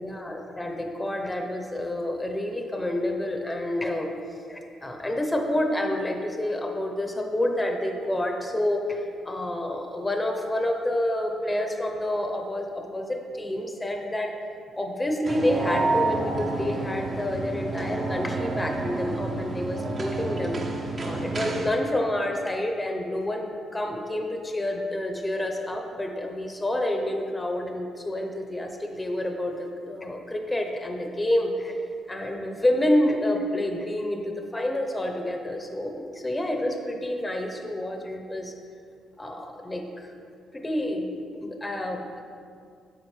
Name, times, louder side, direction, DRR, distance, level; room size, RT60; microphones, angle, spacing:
voice 1, 0.0-4.1 4.5-14.4 14.7-31.8 32.1-38.5 39.2-40.1 40.5-41.1 41.4-42.2, left 1 dB, 15° left, 3 dB, 0.9 m, -28 dB
sound 1, 15.3-21.7, right 3 dB, 40° right, 1.1 m, -29 dB
9.9 x 7.1 x 3.3 m, 2.3 s
cardioid pair, 90°, 0 cm